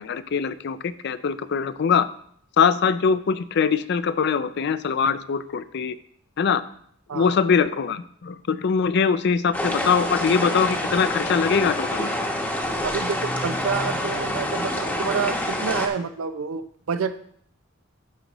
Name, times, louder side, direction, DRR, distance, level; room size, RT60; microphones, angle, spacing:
voice 1, 0.0-2.1 2.6-6.0 6.4-6.6 7.1-12.3, left 6 dB, 55° left, 14 dB, 0.4 m, -22 dB
sound 1, 9.5-15.9, left 1 dB, 10° left, 0.9 m, -27 dB
voice 2, 12.8-17.2, right 6 dB, 80° right, 11 dB, 0.5 m, -28 dB
12.0 x 5.2 x 3.0 m, 0.63 s
head